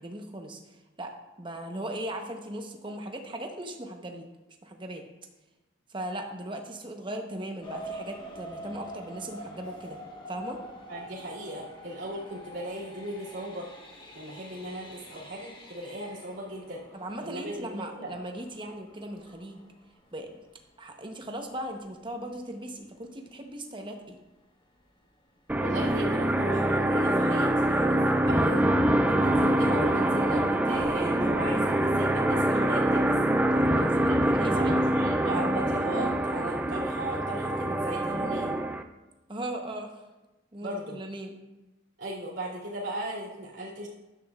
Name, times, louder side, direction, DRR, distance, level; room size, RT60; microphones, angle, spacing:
voice 1, 0.0-4.3 4.6-5.0 5.9-10.0 10.3-10.6 16.9-19.6 20.1-20.4 20.8-24.2 33.5-35.1 39.3-40.0 40.5-41.3, right 1 dB, 25° right, 4 dB, 0.9 m, -38 dB
sound 1, 7.6-20.3 20.9-21.0 21.4-21.6 22.0-22.1, right 1 dB, 25° left, 1.2 m, -46 dB
voice 2, 10.9-13.7 14.1-16.8 17.2-18.1 25.6-28.6 29.1-33.1 34.1-38.6 40.6-41.0 42.0-43.9, right 1 dB, 75° right, -8 dB, 2.5 m, -37 dB
sound 2, 25.5-38.8, right 1 dB, 10° right, 0.3 m, -25 dB
12.0 x 8.4 x 2.4 m, 1.0 s
head